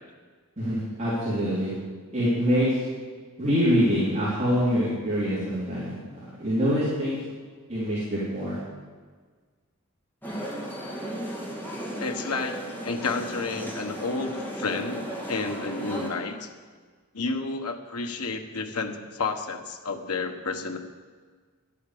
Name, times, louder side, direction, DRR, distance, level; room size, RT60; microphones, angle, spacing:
voice 1, 0.6-1.7 2.1-2.9 3.4-7.2 7.7-8.6, equal, 30° right, -11 dB, 3.8 m, -25 dB
sound 1, 10.2-16.1, equal, 10° left, 2.5 m, -35 dB
voice 2, 12.0-16.5 17.1-20.8, left 3 dB, 85° left, 5 dB, 1.2 m, -31 dB
12.0 x 8.5 x 8.5 m, 1.5 s
head